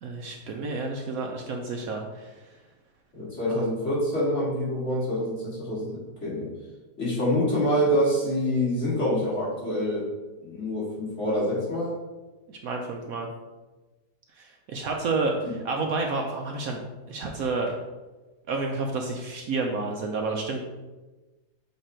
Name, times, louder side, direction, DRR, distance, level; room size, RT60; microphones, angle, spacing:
voice 1, 0.0-2.6 3.5-3.6 12.5-13.3 14.4-16.8 17.1-17.7 18.5-20.6, right 3 dB, 65° right, 2 dB, 1.0 m, -30 dB
voice 2, 3.1-6.5 7.0-10.0 10.4-12.0 15.4-15.5, equal, 45° left, -7 dB, 2.3 m, -26 dB
6.9 x 3.3 x 4.3 m, 1.2 s
omnidirectional pair, 1.8 m